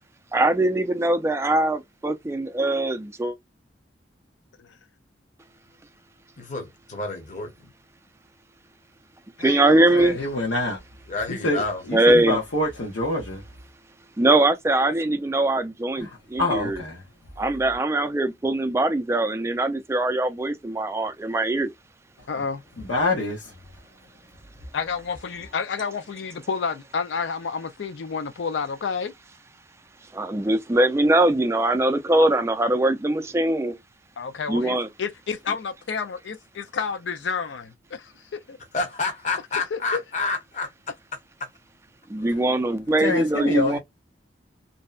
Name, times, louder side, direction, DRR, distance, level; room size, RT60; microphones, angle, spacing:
voice 1, 0.3-3.3 9.4-10.2 11.9-12.4 14.2-16.8 17.4-21.7 30.1-33.8 34.5-34.9 42.1-43.8, right 1 dB, 15° right, 0.3 m, -22 dB
voice 2, 6.4-7.5 11.1-11.8 38.7-40.7, left 3 dB, 40° left, 0.7 m, -29 dB
voice 3, 9.4-10.2 22.3-22.6 24.7-29.1 34.2-38.1 38.5-38.6 39.7-40.0, left 5 dB, 70° left, 0.4 m, -30 dB
voice 4, 10.2-10.8 11.4-13.4 16.0-16.1 16.4-17.0 22.8-23.4 43.0-43.8, left 2 dB, 85° left, 0.8 m, -26 dB
2.6 x 2.1 x 2.3 m
head